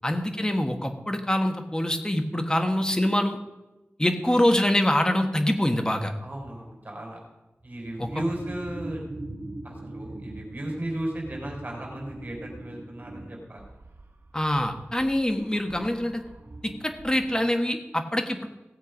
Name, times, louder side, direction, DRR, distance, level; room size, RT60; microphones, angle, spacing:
voice 1, 0.0-3.4 4.0-6.1 8.0-8.1 14.3-16.2 16.6-18.5, left 1 dB, 15° left, 5 dB, 1.5 m, -25 dB
voice 2, 6.2-7.2 7.6-9.0 9.6-13.6, right 1 dB, 40° right, 0 dB, 4.1 m, -35 dB
sound 1, 6.4-6.6 7.6-17.5, right 2 dB, 85° right, 1.8 m, -42 dB
17.5 x 8.0 x 5.2 m, 1.0 s
wide cardioid pair, 75°, 4 cm